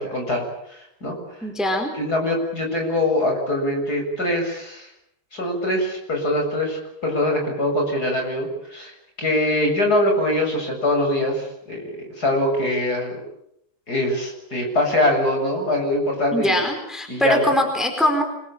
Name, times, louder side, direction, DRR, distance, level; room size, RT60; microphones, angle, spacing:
voice 1, 0.0-1.5 2.0-4.9 5.3-13.2 13.9-16.6 17.1-17.5, left 1 dB, 45° left, 2 dB, 7.9 m, -23 dB
voice 2, 1.4-1.9 16.3-18.2, left 1 dB, ahead, 4 dB, 4.5 m, -22 dB
28.0 x 22.5 x 8.8 m, 0.78 s
omnidirectional pair, 2.3 m